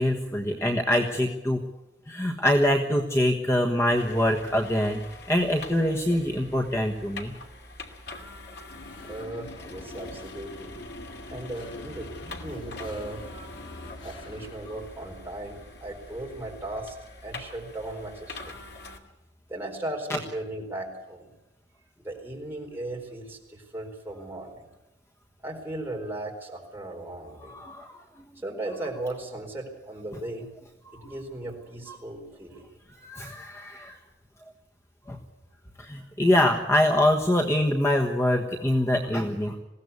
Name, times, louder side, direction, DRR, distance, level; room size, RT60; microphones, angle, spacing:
voice 1, 0.0-1.6 2.1-5.0 5.3-7.3 14.7-14.8 27.4-28.0 31.0-31.1 31.9-32.0 33.0-34.0 35.1-35.2 35.8-39.6, left 1 dB, 15° left, 2 dB, 1.3 m, -24 dB
sound 1, 3.9-19.0, left 3 dB, 60° left, 2.6 m, -45 dB
sound 2, 8.7-15.8, left 1 dB, 80° left, 2.6 m, -44 dB
voice 2, 9.0-10.8 11.3-13.2 14.0-17.0 17.2-18.6 19.5-21.3 22.0-24.7 25.4-27.5 28.4-30.5 30.9-32.7 33.1-33.3, right 1 dB, 10° right, -1 dB, 4.3 m, -37 dB
21.0 x 16.5 x 8.3 m, 1.0 s
head